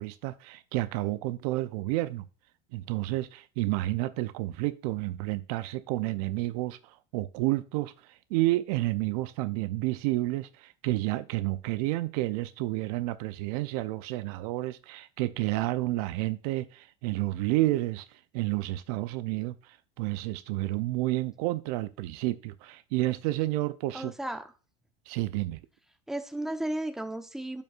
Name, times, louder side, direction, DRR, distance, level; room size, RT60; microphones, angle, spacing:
voice 1, 0.0-2.2 2.7-6.8 7.1-7.9 8.3-18.1 18.3-19.5 20.0-24.1 25.1-25.6, right 18 dB, 70° right, 0.5 m, -30 dB
voice 2, 23.9-24.5 26.1-27.6, right 1 dB, ahead, 0.8 m, -34 dB
10.5 x 5.3 x 2.4 m
supercardioid pair, 110°, 20 cm